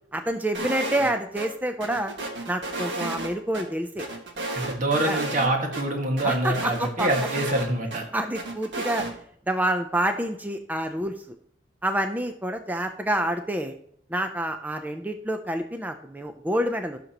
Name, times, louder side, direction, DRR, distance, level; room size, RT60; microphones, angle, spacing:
voice 1, 0.1-2.1 2.5-4.1 5.0-5.2 6.2-7.1 8.1-9.1 9.5-11.4 11.8-13.8 14.1-17.0, right 1 dB, 10° right, 6 dB, 0.6 m, -28 dB
sound 1, 0.5-1.1 1.4-1.5 1.8-3.6 4.0-5.5 5.7-5.8 6.2-8.0 8.3-9.1, right 2 dB, 75° right, 1.8 m, -32 dB
voice 2, 4.5-8.1, right 1 dB, 45° right, 2 dB, 1.8 m, -25 dB
15.5 x 6.6 x 3.0 m, 0.65 s
head